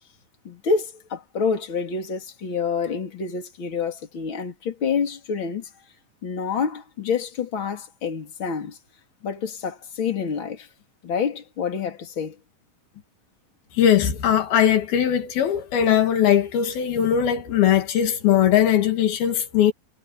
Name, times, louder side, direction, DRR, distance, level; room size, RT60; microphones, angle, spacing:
voice 1, 0.5-5.7 6.2-8.8 9.2-10.7 11.0-12.4, left 5 dB, 35° left, 3.7 m, -27 dB
voice 2, 13.8-19.7, left 10 dB, 85° left, 4.1 m, -20 dB
omnidirectional pair, 4.2 m